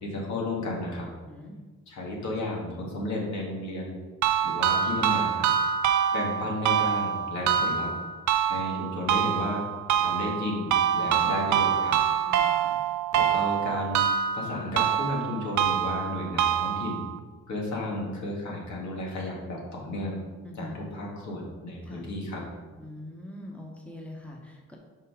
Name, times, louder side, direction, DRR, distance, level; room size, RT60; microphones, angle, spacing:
voice 1, 0.0-1.1 1.9-4.0 4.4-5.5 6.1-7.9 8.5-9.6 10.0-12.0 13.1-14.1 14.3-17.0 17.5-20.2 20.6-22.4, left 2 dB, 70° left, -3 dB, 2.2 m, -33 dB
voice 2, 1.3-1.6 12.3-12.8 20.4-20.8 21.8-22.1 22.8-24.8, left 1 dB, 5° left, -1 dB, 1.3 m, -43 dB
sound 1, 4.2-17.2, right 9 dB, 70° right, 0.6 m, -26 dB
5.7 x 5.6 x 5.1 m, 1.3 s
cardioid pair, 90°, 30 cm